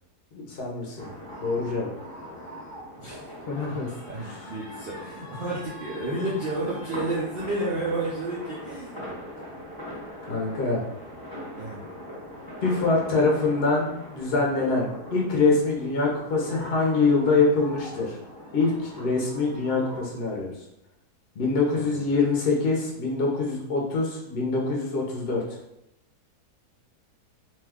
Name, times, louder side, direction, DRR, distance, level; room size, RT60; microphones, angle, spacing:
voice 1, 0.3-1.1 1.4-1.9 3.5-3.9 4.2-4.5 10.3-10.8 12.6-18.2 18.5-20.5 21.4-25.6, left 3 dB, 55° left, -2 dB, 0.7 m, -24 dB
sound 1, 1.0-20.1, equal, 20° left, 0.6 m, -41 dB
voice 2, 3.0-3.3 4.0-9.1 11.6-11.8 21.7-22.0, right 2 dB, 70° right, -6 dB, 0.5 m, -31 dB
2.7 x 2.3 x 3.5 m, 0.84 s
omnidirectional pair, 1.7 m